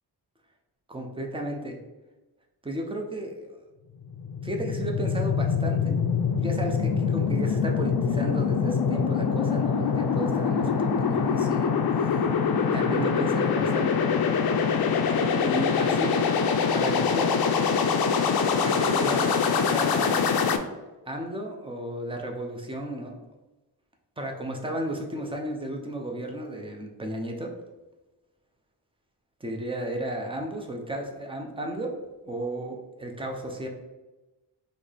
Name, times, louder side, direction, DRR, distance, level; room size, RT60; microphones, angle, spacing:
voice 1, 0.9-1.8 2.6-3.5 4.4-6.0 6.4-11.7 12.0-12.2 12.7-14.0 15.4-16.2 16.7-17.4 18.6-20.2 21.1-23.2 24.2-27.5 29.4-32.0 32.2-33.7, right 1 dB, 15° right, 2 dB, 0.5 m, -33 dB
sound 1, 4.0-20.6, left 6 dB, 60° left, 0.5 m, -24 dB
4.1 x 3.1 x 3.3 m, 1.1 s
wide cardioid pair, 150°, 42 cm